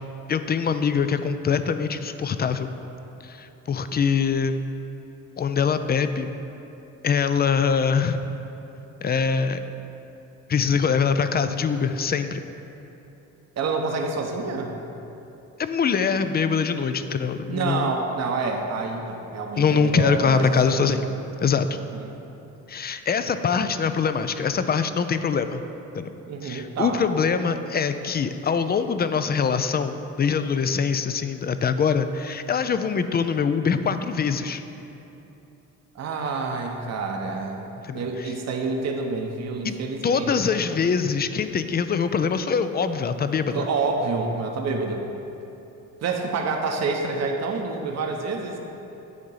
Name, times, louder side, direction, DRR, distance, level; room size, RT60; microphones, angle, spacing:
voice 1, 0.3-2.7 3.2-4.6 5.4-6.3 7.0-8.2 9.0-9.6 10.5-12.4 15.6-17.9 19.6-21.0 21.4-21.7 22.7-25.6 25.9-26.1 26.4-34.6 37.8-38.0 39.6-39.7 40.0-43.7, left 6 dB, 30° left, 10 dB, 0.4 m, -23 dB
voice 2, 13.6-14.7 17.5-20.5 20.8-20.9 21.9-22.1 26.3-27.0 35.9-37.7 37.9-40.6 43.5-45.0 46.0-48.6, right 4 dB, 50° right, 2 dB, 0.9 m, -28 dB
9.5 x 3.7 x 5.6 m, 3.0 s
supercardioid pair, 65°, 35 cm